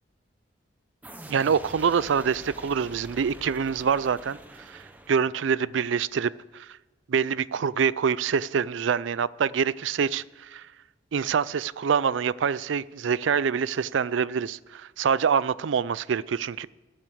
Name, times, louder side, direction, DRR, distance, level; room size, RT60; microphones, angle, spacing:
sound 1, 1.0-5.7, right 1 dB, 10° right, 0.9 m, -45 dB
voice 1, 1.3-4.4 4.7-6.7 7.1-10.6 11.1-16.7, right 6 dB, 75° right, 0.4 m, -25 dB
13.5 x 9.0 x 6.3 m
head